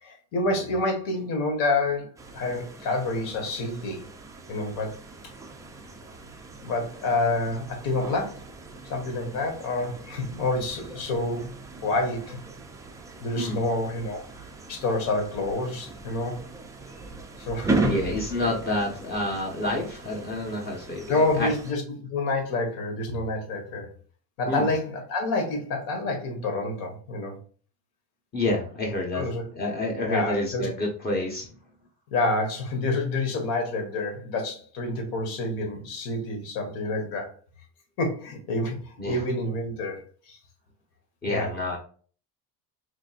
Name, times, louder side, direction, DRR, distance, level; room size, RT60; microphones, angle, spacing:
voice 1, 0.0-4.0 4.5-4.9 5.2-5.3 6.6-8.4 8.8-11.5 11.8-12.4 13.2-14.2 14.7-16.4 17.4-17.9 21.1-23.9 24.4-27.4 29.1-29.4 30.1-30.7 32.1-37.3 38.0-40.0 40.3-40.4 41.2-41.5, left 2 dB, 70° left, 3 dB, 1.7 m, -28 dB
sound 1, 2.2-21.7, right 3 dB, 10° right, 0.4 m, -37 dB
voice 2, 17.8-21.5 24.5-24.7 28.3-31.5 39.0-39.3 41.2-41.8, left 1 dB, 25° left, -1 dB, 1.0 m, -29 dB
5.0 x 3.2 x 2.4 m, 0.42 s
cardioid pair, 150°, 36 cm